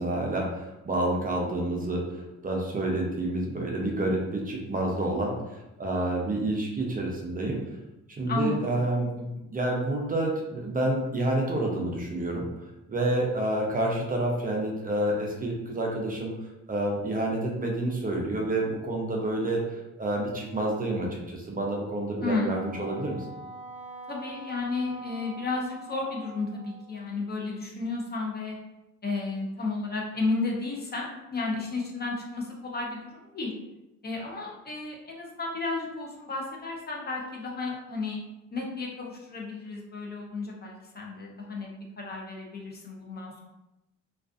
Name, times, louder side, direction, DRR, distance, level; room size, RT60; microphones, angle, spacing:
voice 1, 0.0-7.6 8.1-12.4 12.9-16.3 16.7-23.3, right 1 dB, 30° right, -1 dB, 0.5 m, -29 dB
voice 2, 8.3-8.6 22.2-22.6 24.1-28.6 29.0-33.5 34.0-38.2 38.5-41.7 42.0-43.4, left 3 dB, 35° left, -1 dB, 0.6 m, -33 dB
Wind instrument woodwind instrument, 22.5-27.0, right 2 dB, 5° right, 0.9 m, -44 dB
2.4 x 2.3 x 2.4 m, 0.96 s
cardioid pair, 90°, 30 cm